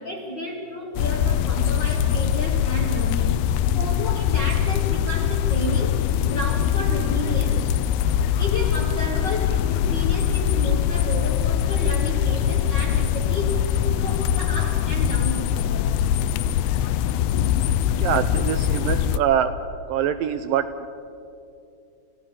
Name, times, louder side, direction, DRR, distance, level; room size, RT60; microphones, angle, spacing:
voice 1, 0.0-3.4 3.7-7.6 8.4-13.6 14.0-16.0, equal, 45° left, 0 dB, 1.5 m, -32 dB
sound 1, 1.0-19.2, left 9 dB, 80° left, 2.4 m, -22 dB
voice 2, 18.0-19.5 19.9-20.9, right 9 dB, 75° right, 10 dB, 2.1 m, -24 dB
29.5 x 16.5 x 6.9 m, 2.5 s
omnidirectional pair, 4.5 m